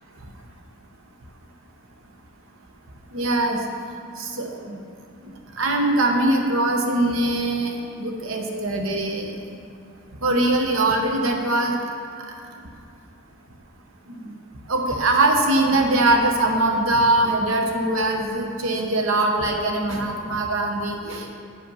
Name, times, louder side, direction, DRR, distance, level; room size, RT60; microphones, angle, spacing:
voice 1, 3.1-3.6 4.2-4.8 5.2-9.3 10.2-11.8 12.3-12.4 14.1-14.4 14.7-21.4, right 2 dB, 70° right, 3 dB, 0.8 m, -22 dB
8.5 x 5.2 x 5.5 m, 2.3 s
head